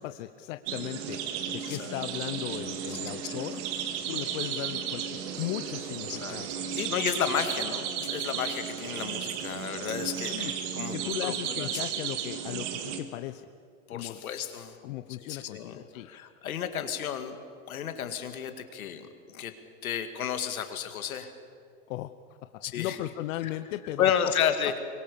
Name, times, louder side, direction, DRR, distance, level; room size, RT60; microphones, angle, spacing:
voice 1, 0.0-3.6 4.1-6.5 10.3-10.5 10.9-13.5 13.9-14.2 14.8-16.1 21.9-22.1 22.4-24.3, left 15 dB, 65° left, 10 dB, 1.0 m, -37 dB
sound 1, 0.7-13.0, right 8 dB, 60° right, 2.5 m, -34 dB
voice 2, 1.7-2.0 3.0-3.6 6.1-6.4 6.7-10.9 11.2-11.8 13.9-14.8 15.3-17.4 17.7-19.5 19.8-21.3 22.6-23.0 24.0-24.8, left 8 dB, 90° left, 8 dB, 2.3 m, -32 dB
24.5 x 22.5 x 6.9 m, 2.3 s
hypercardioid pair, 120°, 41 cm